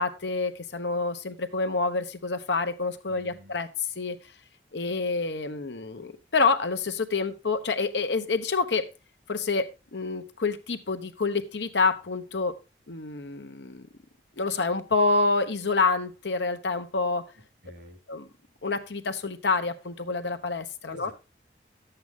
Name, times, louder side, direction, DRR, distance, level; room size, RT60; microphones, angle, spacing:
voice 1, 0.0-3.7 4.0-4.2 4.7-8.9 9.3-12.6 12.9-13.9 14.4-17.3 18.1-18.3 18.6-21.1, left 3 dB, 85° left, 8 dB, 1.0 m, -27 dB
voice 2, 3.1-3.5 17.6-18.0 20.9-21.1, left 1 dB, 85° right, 3 dB, 4.3 m, -48 dB
11.0 x 7.9 x 3.6 m, 0.27 s
head